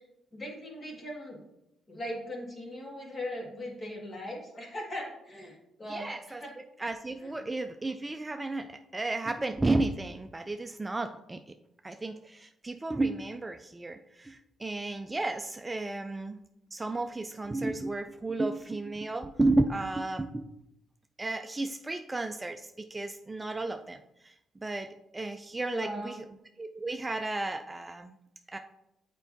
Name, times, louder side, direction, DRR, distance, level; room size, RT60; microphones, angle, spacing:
voice 1, 0.3-1.4 1.9-6.5 7.2-7.3 25.7-26.2, equal, 35° left, -1 dB, 1.8 m, -39 dB
voice 2, 5.9-6.4 6.8-11.4 11.8-16.4 16.7-20.4 21.2-26.2 26.6-28.1 28.5-28.6, right 2 dB, 20° right, 6 dB, 0.3 m, -33 dB
8.1 x 4.5 x 2.7 m, 0.85 s
cardioid pair, 90°, 0 cm